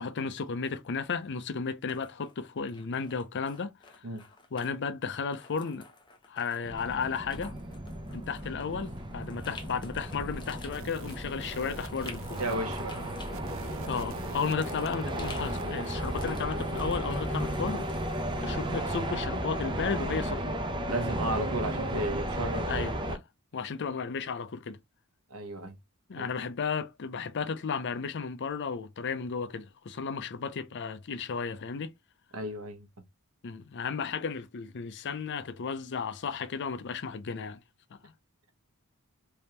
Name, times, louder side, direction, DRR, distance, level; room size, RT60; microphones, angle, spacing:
voice 1, 0.0-4.0 4.5-5.9 6.3-7.6 8.1-12.4 13.9-17.9 18.4-20.6 22.7-23.2 23.5-24.8 26.1-31.9 33.4-37.6 37.9-38.1, left 5 dB, 55° left, 0.5 m, -34 dB
sound 1, 1.9-4.8 5.1-18.2, left 3 dB, 20° left, 0.9 m, -51 dB
sound 2, 6.6-23.2, right 1 dB, 20° right, 0.8 m, -34 dB
sound 3, 10.6-15.7, right 7 dB, 65° right, 0.4 m, -48 dB
voice 2, 12.4-13.1 20.9-22.9 25.3-25.8 26.1-26.3 32.3-32.9, right 1 dB, 80° right, 1.1 m, -34 dB
3.5 x 3.2 x 2.9 m
head